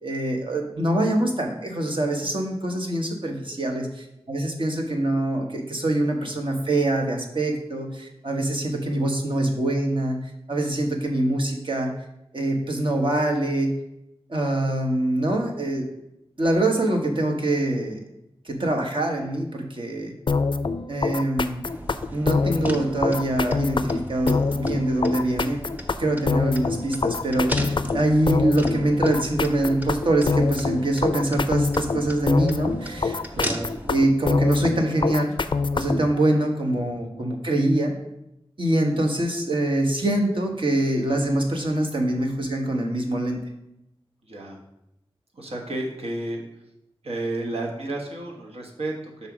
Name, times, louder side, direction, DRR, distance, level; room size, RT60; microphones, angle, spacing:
voice 1, 0.0-11.9 12.3-13.7 14.3-15.8 16.4-18.0 18.4-20.1 20.9-21.6 22.1-25.6 26.0-33.2 33.9-35.3 35.7-37.9 38.6-43.4, right 1 dB, 55° right, 2 dB, 1.3 m, -24 dB
sound 1, 20.3-36.1, left 4 dB, 50° left, 0.4 m, -25 dB
sound 2, 21.7-34.0, equal, 15° right, 0.9 m, -37 dB
voice 2, 33.3-33.7 44.2-44.6 45.3-46.4 47.0-49.3, right 2 dB, 75° right, -1 dB, 1.2 m, -31 dB
5.6 x 4.1 x 6.0 m, 0.85 s
wide cardioid pair, 55°, 10 cm